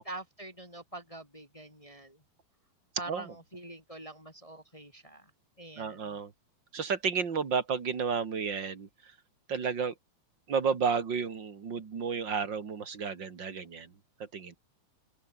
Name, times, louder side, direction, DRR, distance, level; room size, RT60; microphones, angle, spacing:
voice 1, 0.0-2.2 3.0-5.3 5.6-6.2, right 2 dB, 10° left, 3.3 m, -45 dB
voice 2, 5.8-6.3 6.7-9.1 9.5-9.9 10.5-13.9 14.2-14.5, right 6 dB, 35° right, 2.4 m, -32 dB
open air
omnidirectional pair, 4.3 m